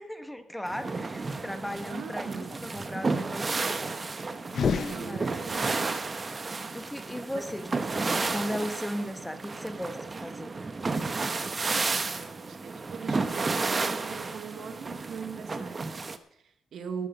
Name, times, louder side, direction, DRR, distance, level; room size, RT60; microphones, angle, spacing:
voice 1, 0.0-3.9 5.0-5.3 6.7-7.7 7.9-10.5, equal, 5° left, 1.3 m, -36 dB
sound 1, 0.7-16.2, right 3 dB, 35° right, 1.1 m, -32 dB
voice 2, 1.9-2.5 4.6-6.1 7.3-7.4 11.4-17.1, right 6 dB, 70° right, 1.3 m, -41 dB
sound 2, 4.4-5.8, left 6 dB, 60° left, 0.8 m, -30 dB
13.5 x 11.5 x 5.2 m
cardioid pair, 85°, 0 cm